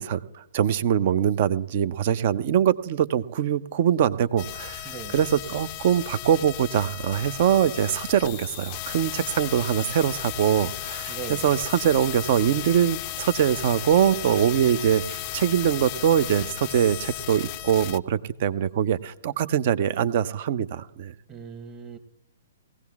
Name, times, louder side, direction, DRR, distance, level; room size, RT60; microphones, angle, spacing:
voice 1, 0.0-21.1, right 9 dB, 50° right, 16 dB, 0.5 m, -23 dB
sound 1, 4.4-18.0, left 15 dB, 35° left, 0.4 m, -35 dB
voice 2, 4.8-5.2 11.1-11.5 21.3-22.0, right 6 dB, 20° right, 8 dB, 1.1 m, -38 dB
19.5 x 16.0 x 2.4 m, 0.95 s
figure-of-eight pair, 120°, 0 cm